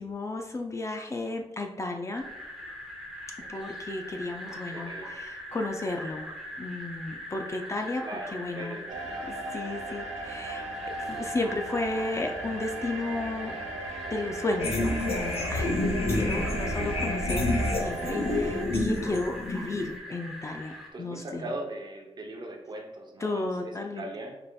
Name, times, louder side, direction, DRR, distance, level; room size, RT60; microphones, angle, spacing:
voice 1, 0.0-2.3 3.5-6.3 6.6-8.0 8.3-8.8 9.5-10.7 11.0-13.5 14.1-15.7 16.1-21.5 23.2-24.1, left 2 dB, 25° left, 4 dB, 0.4 m, -33 dB
sound 1, 2.1-20.9, equal, 5° right, 0.7 m, -41 dB
voice 2, 3.4-3.8 4.7-5.2 8.0-9.2 16.5-16.9 20.9-24.4, right 1 dB, 40° right, 2 dB, 0.7 m, -40 dB
sound 2, 8.9-18.6, right 3 dB, 85° right, 0.8 m, -38 dB
sound 3, 14.6-20.0, left 2 dB, 60° left, 0.9 m, -28 dB
5.2 x 4.2 x 2.3 m, 1.0 s
wide cardioid pair, 175°, 11 cm